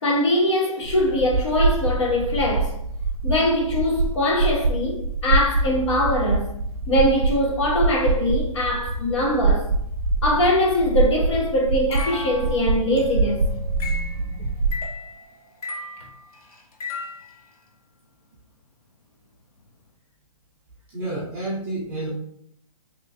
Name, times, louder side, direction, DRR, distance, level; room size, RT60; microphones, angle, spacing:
voice 1, 0.0-2.7 3.2-6.5 6.9-9.7 10.2-13.4, left 1 dB, 50° left, 0.9 m, -22 dB
sound 1, 0.8-14.9, right 3 dB, 80° right, 0.5 m, -25 dB
sound 2, 11.9-17.4, left 3 dB, 85° left, 0.7 m, -35 dB
voice 2, 20.9-22.1, right 2 dB, 10° right, 0.6 m, -29 dB
3.3 x 3.0 x 2.7 m
hypercardioid pair, 170°, 19 cm